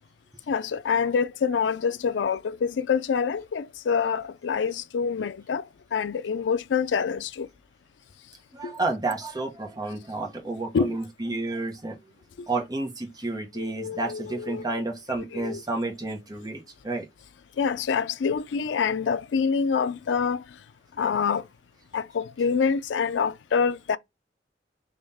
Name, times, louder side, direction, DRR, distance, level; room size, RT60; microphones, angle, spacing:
voice 1, 0.5-5.6 5.9-7.5 8.6-8.7 10.7-11.0 12.4-12.5 13.6-14.7 15.3-15.6 17.6-20.4 21.0-21.4 21.9-24.0, left 6 dB, 90° left, 0.4 m, -26 dB
voice 2, 8.5-12.0 12.5-17.1, right 2 dB, 20° right, 1.0 m, -31 dB
3.6 x 3.1 x 4.1 m
head